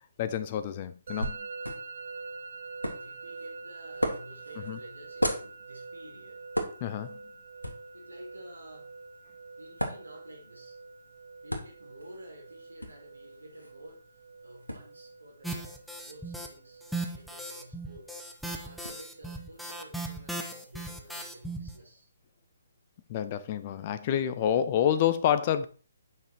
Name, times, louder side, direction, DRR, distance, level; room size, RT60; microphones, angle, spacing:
voice 1, 0.2-1.4 4.7-4.8 6.8-7.2 23.1-25.7, left 10 dB, 30° left, 0.7 m, -28 dB
Musical instrument, 1.1-20.0, right 4 dB, 50° right, 0.9 m, -46 dB
sound 1, 1.2-18.9, equal, 90° left, 1.9 m, -40 dB
voice 2, 3.0-6.4 7.9-8.9 9.6-10.8 11.4-16.8 17.1-22.1, right 1 dB, 80° right, 2.9 m, -51 dB
sound 2, 15.4-16.5 16.8-21.7, right 2 dB, ahead, 0.8 m, -37 dB
9.1 x 5.7 x 4.4 m
figure-of-eight pair, 135°, 0 cm